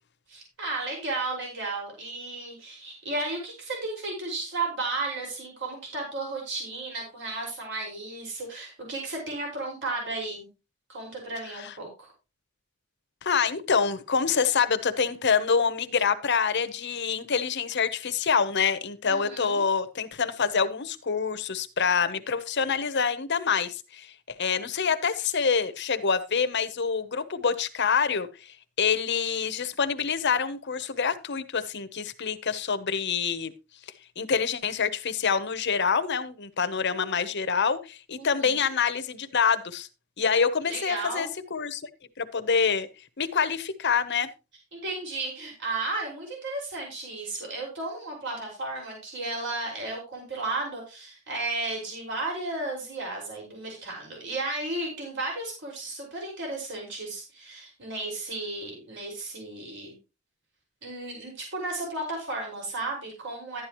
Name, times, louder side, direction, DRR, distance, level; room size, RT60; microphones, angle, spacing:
voice 1, 0.3-10.5 10.9-12.1 19.1-19.7 38.2-38.7 40.7-41.3 44.7-59.9 60.8-63.6, right 2 dB, 60° right, -1 dB, 5.6 m, -34 dB
voice 2, 13.2-28.3 28.8-33.5 34.2-39.9 40.2-41.8 42.2-42.9 43.2-44.3, left 6 dB, 55° left, 11 dB, 1.0 m, -26 dB
12.0 x 10.0 x 3.1 m, 0.29 s
head